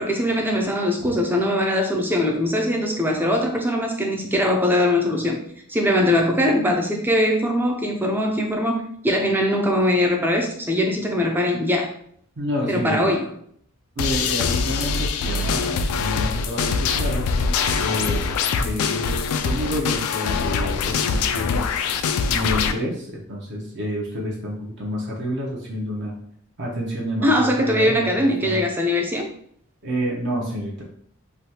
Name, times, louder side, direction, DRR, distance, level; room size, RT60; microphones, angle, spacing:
voice 1, 0.0-5.4 5.7-11.9 12.7-13.3 27.2-29.3, left 1 dB, 10° right, 2 dB, 0.4 m, -21 dB
voice 2, 12.4-13.1 14.0-17.3 17.8-21.7 22.3-26.1 26.6-28.6 29.8-30.8, equal, 55° right, -3 dB, 0.7 m, -29 dB
sound 1, 14.0-22.7, left 5 dB, 85° left, 0.3 m, -23 dB
3.3 x 2.3 x 2.8 m, 0.64 s
head